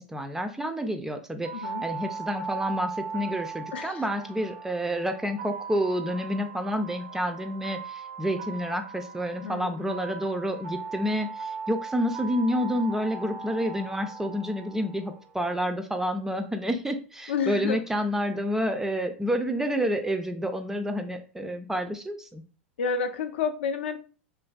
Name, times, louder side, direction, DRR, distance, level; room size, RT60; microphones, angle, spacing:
voice 1, 0.0-22.4, equal, 5° right, 7 dB, 0.3 m, -29 dB
sound 1, 1.4-15.3, right 5 dB, 80° right, 0.6 m, -39 dB
voice 2, 1.5-1.8 3.7-4.0 9.4-9.9 17.3-17.8 22.8-24.0, left 6 dB, 70° left, 7 dB, 0.4 m, -30 dB
3.1 x 2.5 x 2.2 m, 0.39 s
figure-of-eight pair, 90°, 6 cm